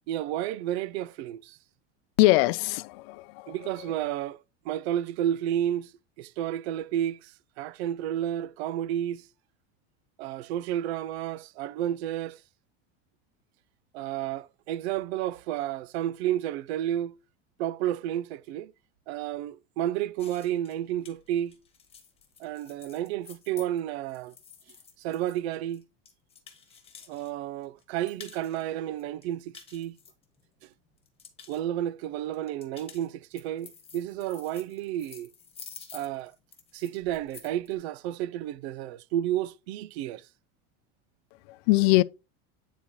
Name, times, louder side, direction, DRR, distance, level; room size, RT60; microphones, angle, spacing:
voice 1, 0.1-1.6 3.5-5.9 6.2-9.3 10.2-12.4 13.9-17.1 17.6-18.7 19.1-21.6 22.4-24.3 25.0-25.8 27.1-30.0 30.6-30.7 31.5-35.3 35.9-36.3 36.7-40.3, right 12 dB, 85° right, 0.5 m, -31 dB
voice 2, 2.2-3.5 41.5-42.0, left 19 dB, 70° left, 0.5 m, -22 dB
sound 1, 20.2-27.3 27.6-28.6 29.0-30.6 31.0-31.6 32.3-37.7, left 6 dB, 20° left, 1.3 m, -50 dB
9.3 x 4.1 x 3.0 m
supercardioid pair, 145°, 31 cm